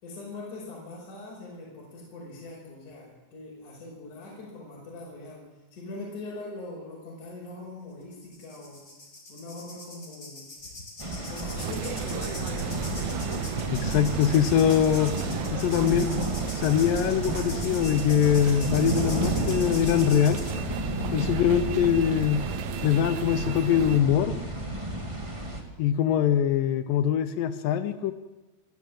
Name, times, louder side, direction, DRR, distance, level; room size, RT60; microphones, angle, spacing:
voice 1, 0.0-5.5 5.7-8.8 9.3-10.5 11.3-13.0, left 2 dB, 45° left, -5 dB, 6.5 m, -41 dB
sound 1, 8.1-20.5, left 2 dB, 20° left, 4.5 m, -42 dB
sound 2, 11.0-25.6, right 1 dB, 15° right, 0.9 m, -32 dB
sound 3, 11.6-24.0, right 13 dB, 80° right, 2.2 m, -35 dB
voice 2, 13.7-15.2 15.5-16.1 16.6-20.5 21.1-22.4 22.8-24.3 25.8-28.1, left 9 dB, 85° left, 11 dB, 1.9 m, -23 dB
28.0 x 13.0 x 7.7 m, 1.1 s
omnidirectional pair, 5.0 m